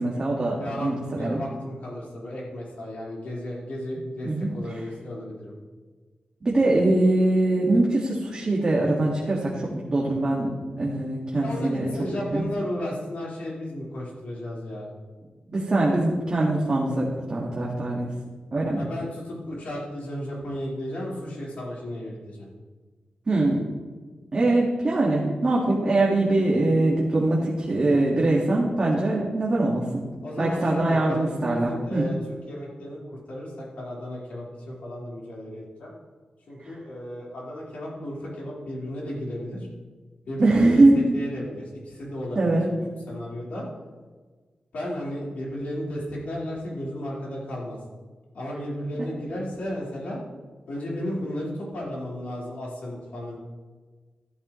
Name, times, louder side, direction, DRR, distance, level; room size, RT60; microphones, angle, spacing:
voice 1, 0.0-1.4 4.2-4.5 6.5-11.9 12.3-12.5 15.5-18.1 18.5-18.8 23.3-23.6 24.3-30.0 30.4-32.0 36.6-36.7 40.4-41.2 42.4-42.7, right 2 dB, 30° right, -4 dB, 1.8 m, -22 dB
voice 2, 0.6-5.5 11.4-14.9 18.7-22.5 30.2-33.0 33.3-35.9 36.5-39.7 40.3-42.6 43.1-43.6 44.7-47.8 48.3-50.2 50.7-53.4, equal, 70° left, -5 dB, 4.3 m, -34 dB
14.0 x 12.5 x 3.2 m, 1.4 s
wide cardioid pair, 165°, 3 cm